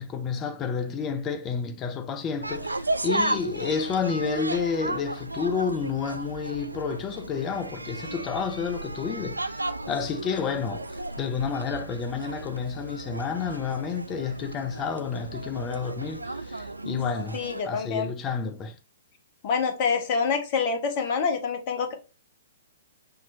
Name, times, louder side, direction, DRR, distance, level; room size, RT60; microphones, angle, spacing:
voice 1, 0.0-17.4 17.7-18.8, left 6 dB, 25° left, 0.7 m, -30 dB
sound 1, 2.4-17.6, right 2 dB, 90° right, 0.3 m, -34 dB
voice 2, 17.3-18.1 19.4-21.9, left 5 dB, 40° left, 1.2 m, -26 dB
5.8 x 3.0 x 2.6 m
figure-of-eight pair, 115°, 0 cm